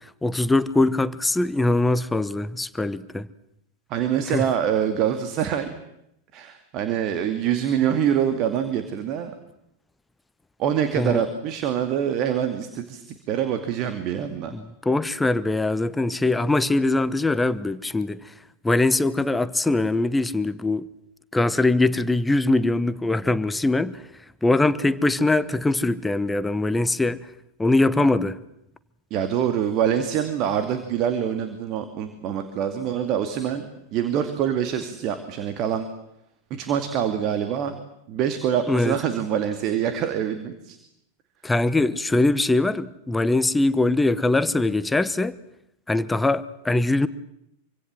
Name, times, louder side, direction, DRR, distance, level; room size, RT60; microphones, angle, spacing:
voice 1, 0.2-3.3 4.3-4.5 11.0-11.2 14.5-18.2 18.6-20.8 21.3-24.0 24.4-27.2 27.6-28.4 38.7-38.9 41.4-45.4 45.9-47.1, left 2 dB, 10° left, 1.0 m, -22 dB
voice 2, 3.9-5.7 6.3-9.3 10.6-14.5 29.1-35.9 36.5-37.7 38.1-40.8, right 9 dB, 40° right, 2.4 m, -25 dB
26.5 x 25.0 x 7.7 m
figure-of-eight pair, 90°, 0 cm